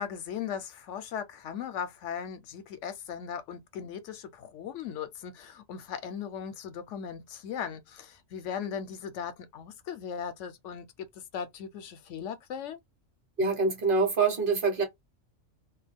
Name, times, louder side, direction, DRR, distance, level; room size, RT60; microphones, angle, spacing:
voice 1, 0.0-10.9 11.1-12.8, left 8 dB, 75° left, 0.9 m, -38 dB
voice 2, 13.4-14.8, right 4 dB, 50° right, 0.9 m, -25 dB
2.3 x 2.2 x 3.4 m
omnidirectional pair, 1.3 m